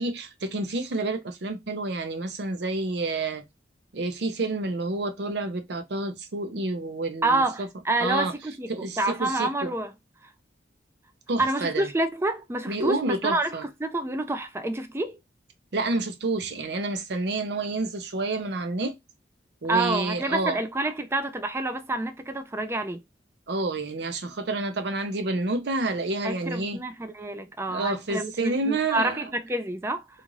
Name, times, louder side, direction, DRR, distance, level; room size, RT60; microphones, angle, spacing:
voice 1, 0.0-3.4 3.9-7.7 8.0-8.3 8.7-9.7 11.3-11.9 12.7-13.6 15.7-19.0 19.6-20.6 23.5-26.8 27.7-29.3, right 2 dB, 65° right, 0.6 m, -29 dB
voice 2, 7.2-8.7 9.0-9.9 11.4-15.2 19.7-23.0 26.2-30.0, right 2 dB, 15° right, 0.4 m, -28 dB
2.5 x 2.5 x 3.0 m
head